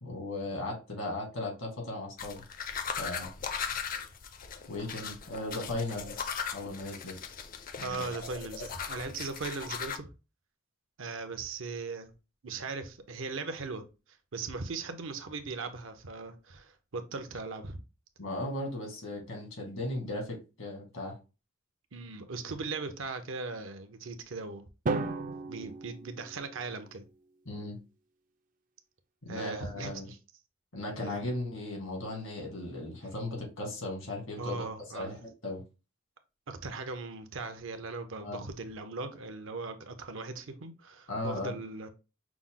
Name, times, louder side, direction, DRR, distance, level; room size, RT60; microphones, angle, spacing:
voice 1, 0.0-2.4 3.0-3.3 4.7-7.1 7.8-8.1 18.2-21.2 27.5-27.8 29.2-30.1 30.7-34.7 34.9-35.6 38.2-38.5 41.1-41.6, left 2 dB, 90° left, 2.1 m, -37 dB
sound 1, 2.2-10.0, left 6 dB, 45° left, 0.5 m, -38 dB
voice 2, 7.8-10.1 11.0-12.1 12.4-13.9 14.3-17.8 21.9-24.6 25.5-27.0 29.3-30.2 31.0-31.2 34.4-35.2 36.5-41.9, right 3 dB, 75° right, 0.7 m, -39 dB
Drum, 24.9-27.0, right 3 dB, 40° right, 0.4 m, -35 dB
5.9 x 2.1 x 3.7 m
head